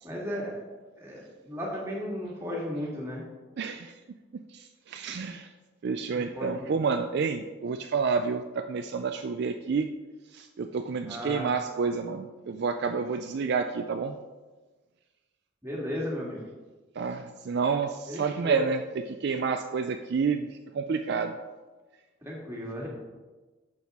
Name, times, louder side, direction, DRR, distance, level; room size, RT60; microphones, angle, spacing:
voice 1, 0.0-0.5 0.9-3.2 6.1-6.5 11.0-11.5 15.6-16.4 18.1-18.6 22.2-22.9, equal, 15° right, -4 dB, 1.8 m, -35 dB
voice 2, 3.6-4.0 4.5-5.5 5.8-9.9 10.3-14.2 17.0-18.8 19.1-21.4, right 5 dB, 55° right, 7 dB, 0.3 m, -29 dB
9.3 x 6.2 x 3.6 m, 1.3 s
head